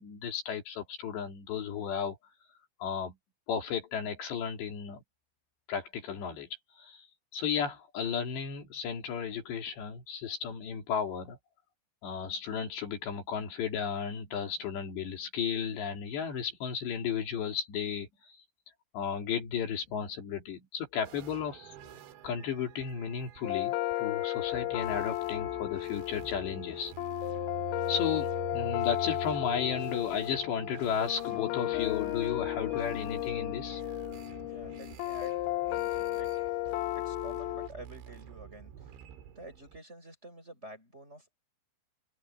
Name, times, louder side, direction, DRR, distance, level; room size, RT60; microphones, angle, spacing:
voice 1, 0.0-2.2 2.8-3.2 3.5-5.0 5.7-6.5 6.8-7.1 7.3-11.4 12.0-18.4 18.9-21.7 22.2-26.9 27.9-33.8, left 7 dB, 75° left, 5.2 m, -34 dB
sound 1, 21.0-39.8, right 8 dB, 80° right, 4.5 m, -47 dB
sound 2, 23.4-37.7, left 17 dB, 90° left, 3.2 m, -34 dB
voice 2, 34.4-36.6 36.9-38.9 39.3-41.4, right 1 dB, 15° right, 6.8 m, -49 dB
open air
omnidirectional pair, 5.1 m